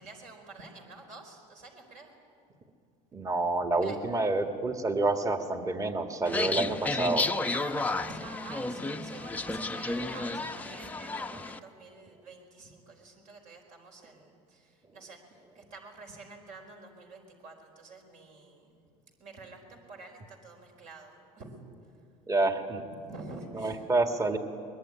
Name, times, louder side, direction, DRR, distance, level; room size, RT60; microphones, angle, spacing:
voice 1, 0.0-2.1 3.8-4.0 7.5-18.8 19.2-21.7 22.9-23.9, right 3 dB, 55° right, 2 dB, 4.7 m, -48 dB
voice 2, 3.1-7.3 22.3-22.8 23.5-24.4, right 2 dB, 20° right, 6 dB, 1.9 m, -28 dB
sound 1, 6.3-11.6, left 3 dB, 10° left, 0.8 m, -32 dB
22.0 x 21.5 x 9.9 m, 2.5 s
supercardioid pair, 120°, 16 cm